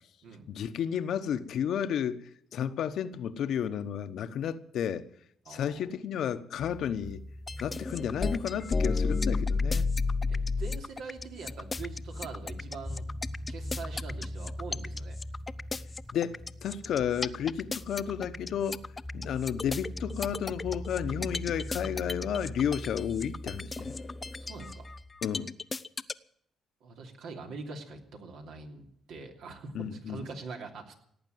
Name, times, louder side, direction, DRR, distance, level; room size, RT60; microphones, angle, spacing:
voice 1, 0.5-5.1 5.5-7.2 7.6-9.9 16.1-18.8 19.1-23.9 25.2-25.5 29.7-30.2, left 9 dB, 70° left, 1.0 m, -32 dB
voice 2, 5.4-5.9 10.3-13.0 13.5-15.2 24.5-24.9 26.8-30.9, right 4 dB, 80° right, 3.0 m, -43 dB
sound 1, 6.6-25.0, left 1 dB, 5° left, 1.2 m, -42 dB
sound 2, 7.5-26.1, left 4 dB, 25° left, 0.6 m, -32 dB
17.5 x 8.8 x 9.3 m
cardioid pair, 90°, 0 cm